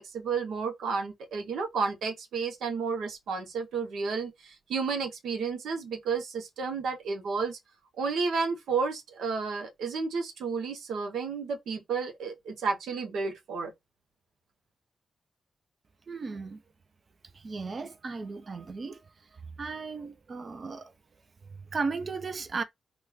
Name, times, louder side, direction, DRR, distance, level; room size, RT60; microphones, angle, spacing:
voice 1, 0.0-7.6 8.0-13.7, right 5 dB, 80° right, 0.7 m, -32 dB
voice 2, 16.1-16.6 17.3-20.9 21.6-22.6, right 4 dB, 50° right, 0.5 m, -36 dB
3.0 x 2.3 x 3.5 m
supercardioid pair, 55°, 0 cm